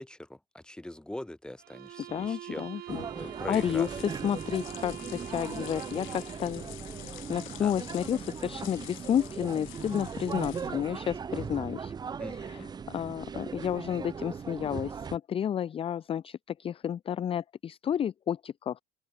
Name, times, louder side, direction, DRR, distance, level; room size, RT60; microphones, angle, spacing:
voice 1, 0.0-3.9 7.6-7.8 12.2-12.7, left 1 dB, 5° left, 2.6 m, -42 dB
sound 1, 1.6-6.6, right 13 dB, 50° right, 1.1 m, -44 dB
voice 2, 2.1-6.7 7.0-11.9 12.3-18.8, left 9 dB, 25° left, 0.5 m, -31 dB
sound 2, 2.9-15.2, right 6 dB, 20° right, 0.6 m, -39 dB
sound 3, 3.2-11.0, left 20 dB, 75° left, 2.4 m, -48 dB
open air
cardioid pair, 155°, 21 cm